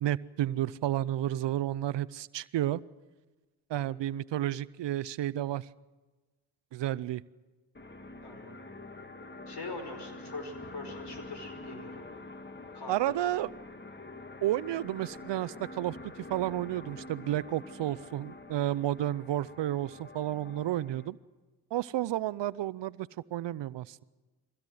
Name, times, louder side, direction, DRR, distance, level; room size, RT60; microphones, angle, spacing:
voice 1, 0.0-2.8 3.7-5.7 6.7-7.2 12.9-13.5 14.4-21.2 21.7-24.0, right 13 dB, 60° right, 20 dB, 0.6 m, -31 dB
sound 1, 7.7-21.1, left 2 dB, 20° left, 1.8 m, -46 dB
voice 2, 8.2-8.6 9.5-12.0 12.7-13.2, left 3 dB, 55° left, 6 dB, 5.5 m, -43 dB
22.5 x 16.5 x 7.8 m, 1.2 s
supercardioid pair, 50°, 48 cm